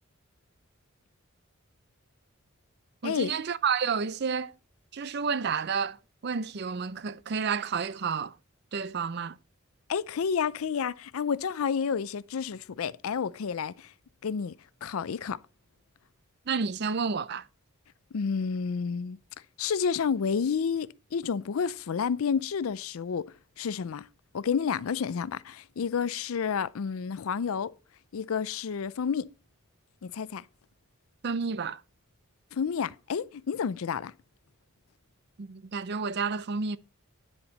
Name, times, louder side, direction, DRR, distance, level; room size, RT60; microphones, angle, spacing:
voice 1, 3.0-4.5 4.9-6.0 6.2-8.4 8.7-9.4 16.5-17.5 31.2-31.8 35.4-36.8, right 5 dB, 50° right, 0.5 m, -30 dB
voice 2, 9.9-13.9 14.2-15.4 18.1-19.2 19.6-24.1 24.3-27.7 28.1-29.3 30.0-30.4 32.5-34.1, left 6 dB, 80° left, 0.4 m, -30 dB
9.7 x 7.0 x 3.9 m
head